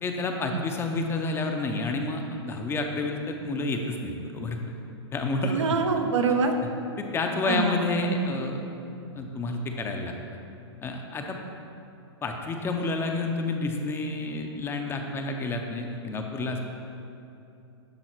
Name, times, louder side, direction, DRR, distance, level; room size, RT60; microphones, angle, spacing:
voice 1, 0.0-4.6 5.1-5.6 7.0-8.6 9.1-10.1 10.8-11.4 12.2-16.6, left 2 dB, 15° left, 3 dB, 0.6 m, -29 dB
voice 2, 5.4-6.5 7.5-7.7 8.0-8.3, right 5 dB, 85° right, 4 dB, 0.9 m, -25 dB
10.5 x 3.8 x 4.5 m, 2.7 s
hypercardioid pair, 130°, 15 cm